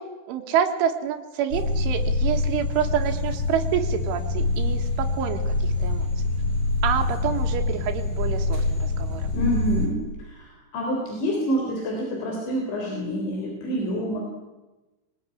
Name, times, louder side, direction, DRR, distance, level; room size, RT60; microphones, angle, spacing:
voice 1, 0.0-6.1 6.8-9.3, right 9 dB, 90° right, 4 dB, 4.1 m, -28 dB
sound 1, 1.5-9.9, left 2 dB, 35° left, 6.0 m, -25 dB
voice 2, 9.3-14.2, equal, 70° left, 0 dB, 6.2 m, -27 dB
23.5 x 19.5 x 9.9 m, 1.1 s
omnidirectional pair, 5.4 m